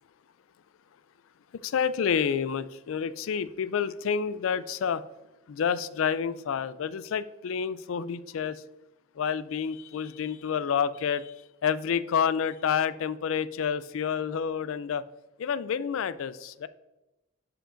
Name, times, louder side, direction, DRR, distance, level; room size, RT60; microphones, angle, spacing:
voice 1, 1.5-5.0 5.5-8.6 9.2-11.3 11.6-15.0 15.4-16.7, left 7 dB, 75° left, 15 dB, 0.3 m, -29 dB
11.5 x 5.1 x 2.5 m, 0.98 s
head